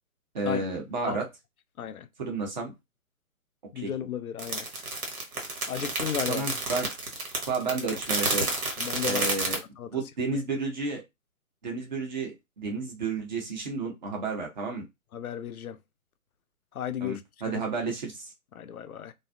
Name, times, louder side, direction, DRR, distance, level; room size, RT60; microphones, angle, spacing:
voice 1, 0.3-1.2 2.2-2.7 3.8-3.9 6.3-6.9 7.5-8.5 9.0-9.6 9.9-11.0 11.6-14.9 17.0-18.3, right 3 dB, 30° right, 0.7 m, -31 dB
voice 2, 3.7-4.7 5.7-6.5 8.8-9.2 9.8-9.9 15.1-15.8 16.7-17.2 17.5-17.6 18.5-19.1, left 9 dB, 75° left, 0.5 m, -34 dB
sound 1, 4.4-9.6, right 2 dB, 80° right, 1.2 m, -30 dB
2.6 x 2.3 x 2.2 m
figure-of-eight pair, 140°, 43 cm